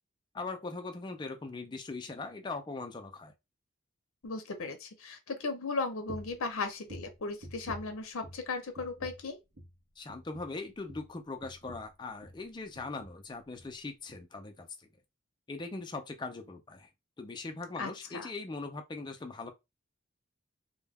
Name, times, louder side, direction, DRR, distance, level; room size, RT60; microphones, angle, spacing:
voice 1, 0.3-3.3 10.0-14.9 15.5-16.9 17.2-19.5, left 3 dB, 20° left, 0.3 m, -40 dB
voice 2, 4.2-9.4 17.8-18.3, left 3 dB, 80° left, 0.6 m, -36 dB
sound 1, 6.1-6.4 6.8-8.5 8.7-9.3 9.5-9.8 10.1-12.5 12.7-13.2 13.5-13.7 14.1-14.2, equal, 55° right, 0.6 m, -49 dB
2.2 x 2.1 x 3.3 m
head